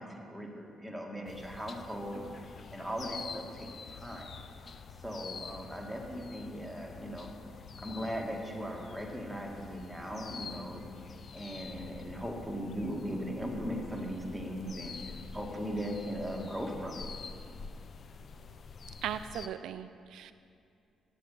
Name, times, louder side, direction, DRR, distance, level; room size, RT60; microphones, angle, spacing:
voice 1, 0.0-4.4 5.0-7.3 7.8-10.9 11.3-17.1, equal, ahead, 0 dB, 1.7 m, -39 dB
sound 1, 1.3-19.5, left 5 dB, 50° left, 0.4 m, -47 dB
voice 2, 19.0-20.3, right 9 dB, 80° right, 11 dB, 0.3 m, -38 dB
8.0 x 7.5 x 8.5 m, 2.4 s
cardioid pair, 90°, 0 cm